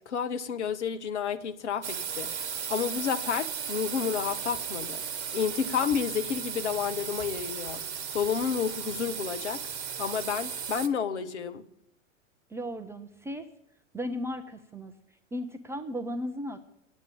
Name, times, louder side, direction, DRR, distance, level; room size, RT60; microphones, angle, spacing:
voice 1, 0.1-5.0 5.3-7.8 8.1-9.6 10.0-11.6, left 7 dB, 60° left, 1.1 m, -30 dB
sound 1, 1.8-10.9, right 7 dB, 60° right, 1.1 m, -36 dB
voice 2, 12.5-13.4 13.9-14.9 15.3-16.7, equal, 5° right, 0.4 m, -35 dB
10.0 x 8.3 x 8.8 m
figure-of-eight pair, 95°, 39 cm